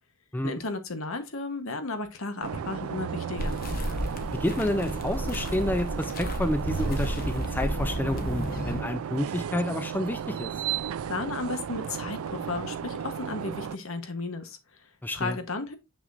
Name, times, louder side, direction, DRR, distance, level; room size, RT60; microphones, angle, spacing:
voice 1, 0.4-3.6 11.1-14.9 15.1-15.7, left 3 dB, 70° left, 1.2 m, -34 dB
sound 1, 2.4-13.8, right 8 dB, 75° right, 0.3 m, -34 dB
sound 2, 3.4-8.8, equal, 40° left, 1.0 m, -32 dB
voice 2, 4.3-10.6 15.0-15.4, left 1 dB, 10° left, 0.4 m, -29 dB
6.5 x 6.0 x 2.6 m
head